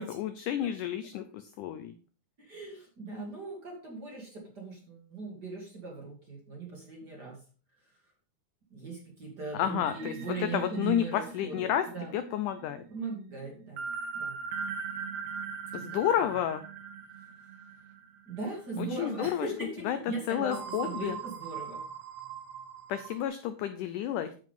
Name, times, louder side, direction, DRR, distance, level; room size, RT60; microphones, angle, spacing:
voice 1, 0.0-1.9 9.5-10.1 10.4-11.9 12.1-12.8 15.7-16.6 18.8-19.5 19.8-20.0 20.3-21.2 22.9-24.3, left 10 dB, 85° left, 10 dB, 1.8 m, -31 dB
voice 2, 2.4-7.4 8.7-12.1 12.9-13.9 14.1-14.4 15.8-16.0 18.3-21.8, right 4 dB, 35° right, -1 dB, 2.1 m, -39 dB
sound 1, 9.8-18.7 19.0-19.2 20.5-23.2, right 6 dB, 85° right, 1.5 m, -41 dB
9.4 x 7.4 x 3.7 m, 0.40 s
omnidirectional pair, 4.4 m